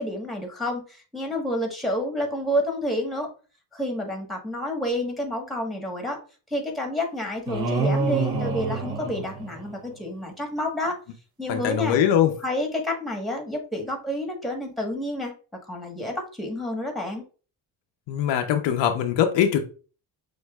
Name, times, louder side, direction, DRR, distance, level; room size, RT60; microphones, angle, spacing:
voice 1, 0.0-3.3 3.7-6.2 6.5-11.0 11.4-12.0 12.4-15.3 15.7-17.2, left 1 dB, ahead, 1.2 m, -29 dB
sound 1, 7.5-10.0, right 3 dB, 55° right, 1.0 m, -27 dB
voice 2, 11.5-12.3 18.1-19.6, left 9 dB, 80° left, 0.7 m, -22 dB
6.4 x 2.6 x 2.3 m
cardioid pair, 105°, 42 cm